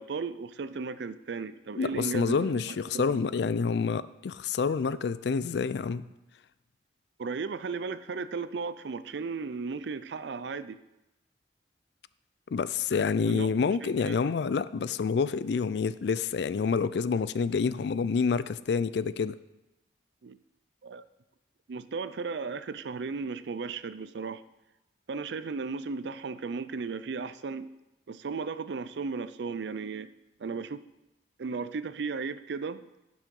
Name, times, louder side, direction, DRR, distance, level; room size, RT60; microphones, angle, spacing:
voice 1, 0.0-3.3 7.2-10.8 13.0-14.2 20.2-20.4 20.8-21.1 21.7-24.4 25.1-27.7 28.1-30.1 30.4-30.8 31.4-32.8, right 4 dB, 70° right, 14 dB, 0.4 m, -35 dB
voice 2, 1.8-6.0 12.5-19.4, left 5 dB, 70° left, 16 dB, 0.4 m, -28 dB
11.0 x 6.2 x 5.3 m, 0.96 s
head